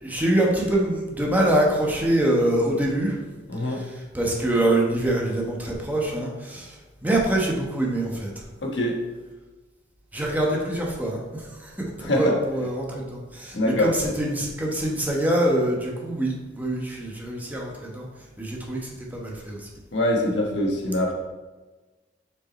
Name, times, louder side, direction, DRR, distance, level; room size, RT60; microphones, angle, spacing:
voice 1, 0.0-3.2 3.6-8.4 10.1-18.1 18.4-19.7, right 1 dB, 10° right, -2 dB, 1.0 m, -25 dB
voice 2, 3.5-3.8 8.6-8.9 12.0-12.4 13.5-13.9 19.9-21.1, left 1 dB, 70° left, -1 dB, 1.3 m, -23 dB
6.1 x 4.8 x 4.2 m, 1.2 s
head